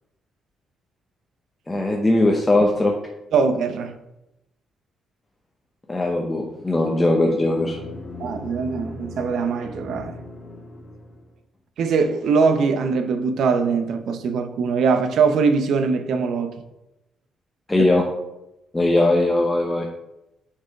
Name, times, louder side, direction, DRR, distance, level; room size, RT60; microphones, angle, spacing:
voice 1, 1.7-2.9 5.9-7.8 17.7-18.0 18.7-19.9, left 2 dB, 15° left, 0.7 m, -19 dB
voice 2, 3.3-3.9 8.2-10.2 11.8-16.5 17.8-17.9, right 5 dB, 70° right, 0.6 m, -21 dB
sound 1, 6.4-11.3, left 2 dB, 35° left, 1.4 m, -38 dB
6.0 x 4.7 x 3.4 m
cardioid pair, 90°, 0 cm